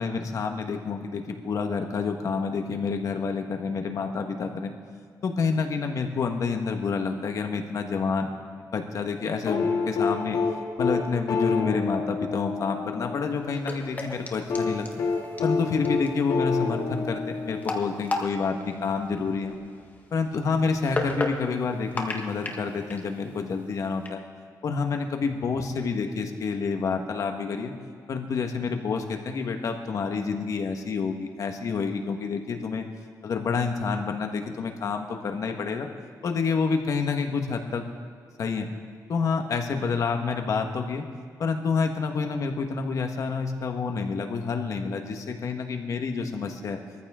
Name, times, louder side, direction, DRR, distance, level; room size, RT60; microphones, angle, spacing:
voice 1, 0.0-4.7 5.2-8.3 8.7-10.4 10.8-15.0 15.4-18.5 18.8-19.5 20.1-24.2 24.6-27.7 28.1-32.8 33.2-35.9 36.2-37.8 38.4-38.7 39.1-41.0 41.4-46.8, left 5 dB, 55° left, 5 dB, 1.5 m, -28 dB
sound 1, 9.5-13.5 14.5-18.1 19.5-19.6, left 4 dB, 75° left, 2.5 m, -28 dB
sound 2, 13.4-24.1, left 2 dB, 25° left, 1.5 m, -36 dB
23.5 x 14.5 x 3.8 m, 2.2 s
wide cardioid pair, 155°, 7 cm